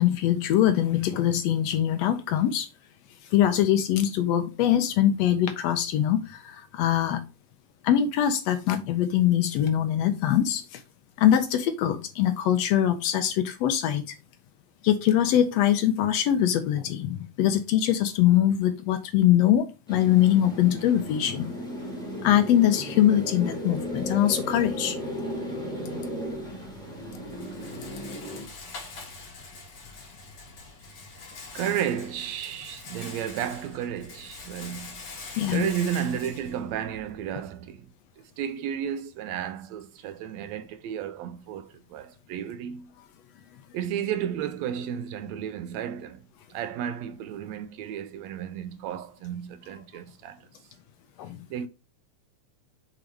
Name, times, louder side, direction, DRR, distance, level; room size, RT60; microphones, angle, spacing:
voice 1, 0.0-2.7 3.3-7.2 7.8-10.8 11.2-14.1 14.8-21.5 22.2-25.0 35.4-35.7 51.2-51.4, left 11 dB, 80° left, 1.6 m, -23 dB
sound 1, 19.9-28.4, equal, ahead, 2.1 m, -35 dB
Rattle, 26.2-37.3, left 3 dB, 60° left, 3.2 m, -44 dB
voice 2, 31.5-35.0 35.5-37.9 38.2-42.9 43.7-46.2 46.5-50.4 51.5-51.7, right 9 dB, 80° right, 1.7 m, -33 dB
7.0 x 3.8 x 4.6 m
omnidirectional pair, 3.3 m